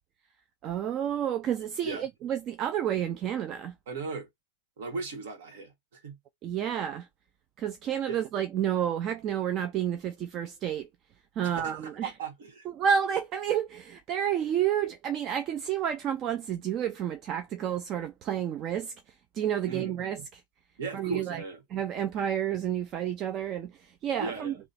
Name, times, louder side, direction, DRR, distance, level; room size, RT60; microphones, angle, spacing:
voice 1, 0.6-3.7 6.4-7.1 7.6-10.9 11.4-12.1 12.8-18.9 19.3-20.4 20.9-21.4 21.7-24.5, right 9 dB, 25° right, 0.3 m, -30 dB
voice 2, 3.9-4.3 4.8-6.2 8.1-8.2 11.4-12.7 19.6-20.0 20.8-21.6 24.2-24.6, right 4 dB, 65° right, 1.4 m, -37 dB
3.0 x 2.2 x 4.1 m
supercardioid pair, 155°, 0 cm